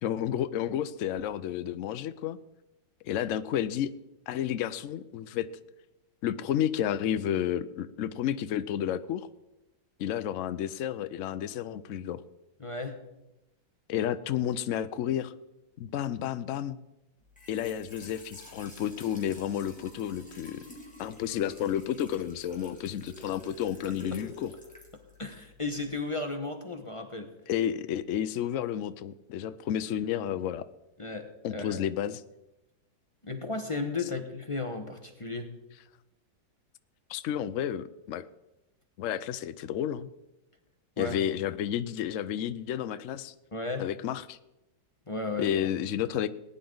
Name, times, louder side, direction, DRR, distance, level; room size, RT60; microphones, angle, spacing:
voice 1, 0.0-2.4 3.0-3.9 4.3-5.5 6.2-9.3 10.0-12.2 13.9-15.3 15.8-16.8 17.5-20.6 21.0-24.5 27.5-30.6 31.4-32.2 37.1-38.2 39.0-40.1 41.0-43.3 43.8-44.4 45.4-46.3, left 10 dB, 70° left, 13 dB, 0.7 m, -31 dB
voice 2, 12.6-13.0 25.2-27.3 31.0-31.8 33.2-35.5 41.0-41.2 43.5-43.9 45.1-45.7, left 3 dB, 20° left, 4 dB, 0.9 m, -34 dB
Trickle dribble / Fill (with liquid), 17.2-26.0, left 1 dB, 5° left, 2.3 m, -49 dB
19.0 x 9.9 x 3.9 m, 0.95 s
omnidirectional pair, 2.0 m